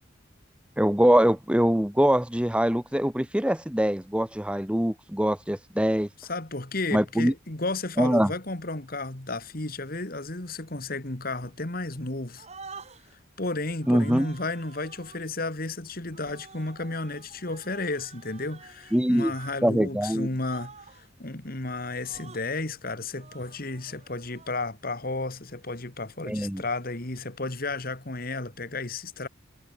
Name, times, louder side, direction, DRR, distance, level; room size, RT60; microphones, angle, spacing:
voice 1, 0.8-6.1 6.9-7.3 8.0-8.3 13.9-14.3 18.9-19.3 19.6-20.3 26.3-26.6, equal, 5° right, 1.1 m, -23 dB
voice 2, 6.2-12.5 13.1-29.3, left 2 dB, 50° left, 2.2 m, -33 dB
sound 1, 11.4-12.0 12.3-13.2 13.8-15.3 16.1-19.7 19.9-20.1 20.3-21.1 21.9-22.5 23.1-24.5, right 4 dB, 35° right, 4.0 m, -49 dB
head